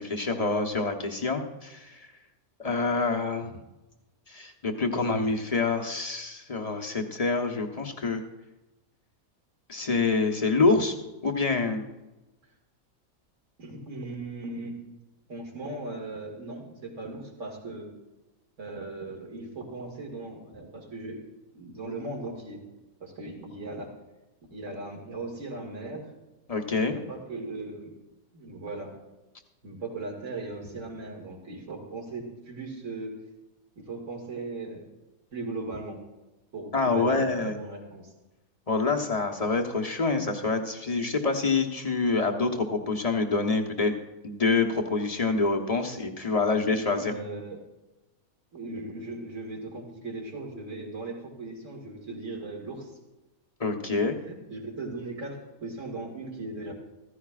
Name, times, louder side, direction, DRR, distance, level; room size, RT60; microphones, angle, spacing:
voice 1, 0.0-2.1 2.6-3.6 4.3-8.2 9.7-10.9 11.2-11.8 26.5-27.0 36.7-37.6 38.7-43.9 44.2-47.1 53.6-54.2, left 3 dB, 30° left, 2 dB, 1.0 m, -26 dB
voice 2, 13.6-14.8 15.3-17.9 18.6-21.2 21.5-22.6 23.0-23.9 24.5-26.1 26.8-28.0 28.3-28.9 29.6-33.1 33.8-34.8 35.3-36.0 36.5-38.1 46.3-47.6 48.5-52.9 54.3-56.7, right 2 dB, 60° right, 1 dB, 2.5 m, -38 dB
14.5 x 14.5 x 2.4 m, 1.0 s
omnidirectional pair, 1.5 m